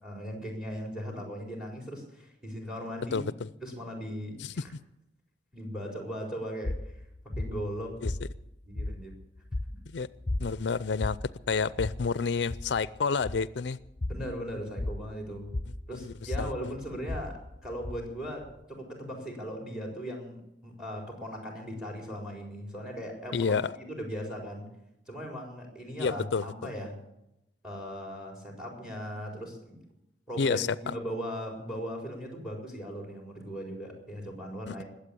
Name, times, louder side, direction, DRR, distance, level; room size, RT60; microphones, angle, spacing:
voice 1, 0.0-3.2 3.6-4.7 5.5-7.0 7.4-8.0 8.7-9.1 14.0-15.5 15.9-24.7 25.1-27.0 27.6-29.8 30.3-34.8, equal, 5° right, 1 dB, 4.3 m, -38 dB
voice 2, 3.1-3.5 4.4-4.5 8.0-8.1 9.9-10.1 10.4-11.2 11.5-13.8 16.0-16.1 16.4-16.5 23.3-23.8 26.0-26.7 30.4-30.7 34.7-34.8, left 5 dB, 75° left, 17 dB, 0.5 m, -29 dB
sound 1, 6.6-18.6, left 1 dB, 25° left, 0.7 m, -37 dB
21.0 x 8.2 x 8.5 m, 0.88 s
head